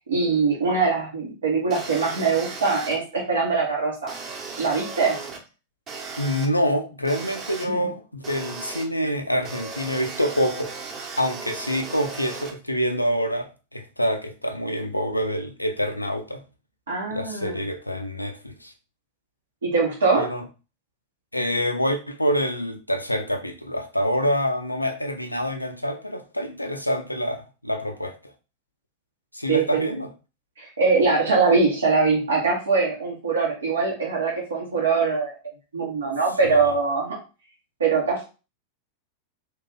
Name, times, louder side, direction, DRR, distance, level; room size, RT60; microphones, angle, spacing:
voice 1, 0.0-4.1 4.6-5.2 7.6-7.9 16.9-17.6 19.6-20.3 29.5-29.9 30.6-35.4 35.7-37.2 37.8-38.3, right 4 dB, 70° right, 0.9 m, -22 dB
sound 1, 1.7-3.0 4.1-5.4 5.9-6.5 7.0-7.6 8.2-8.8 9.4-12.5, right 4 dB, 30° right, 1.0 m, -36 dB
voice 2, 6.2-10.7 11.2-16.4 17.1-18.7 20.2-20.4 21.3-28.2 29.3-30.1 36.4-36.5, equal, 85° left, 0.5 m, -26 dB
3.0 x 2.3 x 3.7 m
figure-of-eight pair, 90°, 0 cm